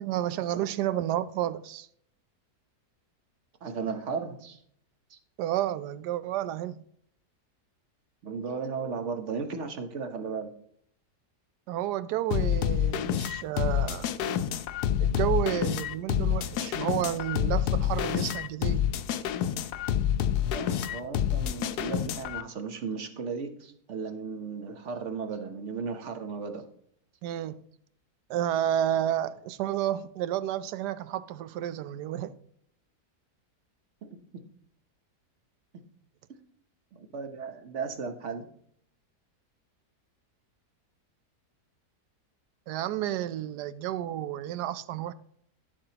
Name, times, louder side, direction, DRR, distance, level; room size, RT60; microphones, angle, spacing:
voice 1, 0.0-1.9 5.4-6.8 11.7-14.1 15.0-18.9 27.2-27.6 28.3-32.3 42.7-45.1, right 12 dB, 80° right, 1.2 m, -31 dB
voice 2, 3.6-4.6 5.1-5.2 8.2-10.5 20.5-26.7 34.0-34.1 34.3-34.4 36.9-38.5, right 5 dB, 50° right, 1.2 m, -35 dB
sound 1, 12.3-22.4, left 10 dB, 75° left, 1.1 m, -28 dB
11.0 x 7.4 x 2.9 m
omnidirectional pair, 1.8 m